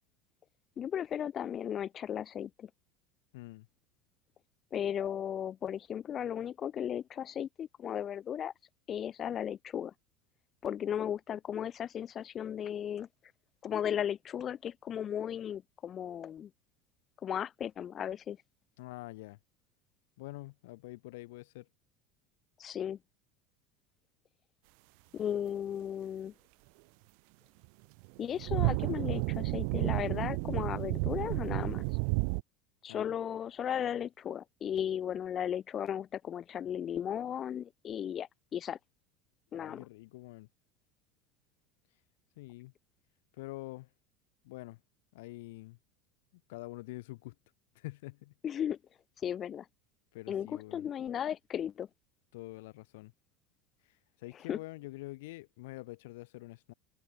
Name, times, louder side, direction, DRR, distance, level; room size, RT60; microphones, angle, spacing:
voice 1, 0.8-2.7 4.7-8.5 8.9-9.9 10.6-13.1 13.6-16.5 17.2-18.4 22.6-23.0 25.1-26.3 28.2-31.8 32.8-38.8 39.5-39.8 48.4-48.8 49.2-49.7 50.3-51.9 54.5-54.6, left 9 dB, 30° left, 0.9 m, -35 dB
voice 2, 3.3-3.7 18.8-19.4 20.2-21.7 32.9-33.1 39.5-40.5 42.4-42.7 43.4-43.9 44.4-44.8 45.1-45.8 46.5-47.3 47.8-48.3 50.1-50.9 52.3-53.1 54.2-56.7, left 20 dB, 85° left, 2.0 m, -46 dB
sound 1, 28.0-32.4, right 40 dB or more, 65° right, 0.4 m, -31 dB
supercardioid pair, 150°, 0 cm